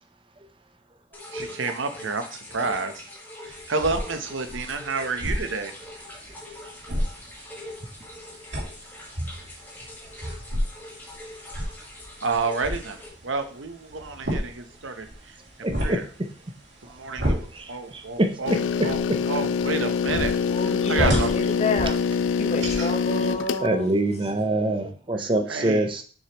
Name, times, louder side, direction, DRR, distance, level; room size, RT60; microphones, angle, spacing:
sound 1, 1.1-13.1, left 1 dB, 10° left, 1.5 m, -43 dB
voice 1, 1.3-3.0 3.4-5.7 12.2-13.0 13.2-15.4 15.8-16.0 16.8-19.0 19.3-21.3 24.5-24.9 25.5-25.9, right 4 dB, 80° right, 8 dB, 0.9 m, -30 dB
sound 2, 3.5-23.0, equal, 65° right, 2.7 m, -33 dB
voice 2, 15.6-16.0 17.2-18.3 18.8-18.9 20.2-20.3 23.6-26.0, right 1 dB, 25° right, 6 dB, 0.6 m, -25 dB
sound 3, 18.5-23.7, left 6 dB, 75° left, 0.3 m, -25 dB
voice 3, 20.5-22.0 22.4-23.9, left 2 dB, 35° left, 4 dB, 1.1 m, -29 dB
6.6 x 6.4 x 3.0 m, 0.40 s
head